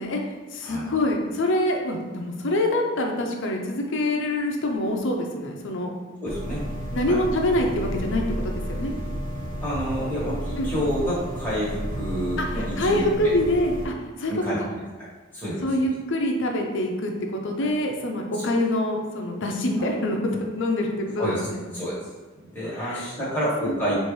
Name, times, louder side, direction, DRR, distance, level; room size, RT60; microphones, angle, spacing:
voice 1, 0.0-5.9 6.9-8.9 10.6-10.7 12.4-14.3 14.6-14.7 15.6-21.6 22.7-23.1 23.7-23.8, left 1 dB, 60° left, 2 dB, 0.6 m, -25 dB
voice 2, 6.2-6.6 7.1-7.2 9.6-13.3 14.3-14.6 15.3-15.8 19.8-19.9 21.2-21.4 21.7-22.0 22.4-23.9, equal, 10° left, -9 dB, 1.3 m, -28 dB
sound 1, 6.3-13.9, equal, 40° right, 0.5 m, -32 dB
4.5 x 2.6 x 3.2 m, 1.4 s
head